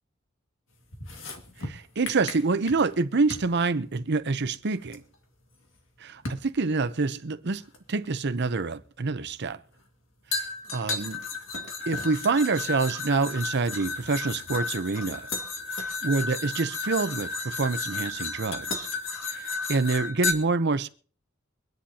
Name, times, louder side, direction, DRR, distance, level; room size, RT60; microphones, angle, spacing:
sound 1, 0.9-3.0 3.3-3.5 4.9-5.0 6.3-6.5 7.7-7.8 10.3-20.3, left 4 dB, 70° left, 2.1 m, -33 dB
voice 1, 1.6-5.0 6.0-7.6 7.9-9.6 10.3-10.4 10.7-11.2 11.9-15.3 16.0-18.9 19.3-20.9, right 3 dB, 60° right, 0.8 m, -27 dB
24.5 x 10.0 x 2.9 m
head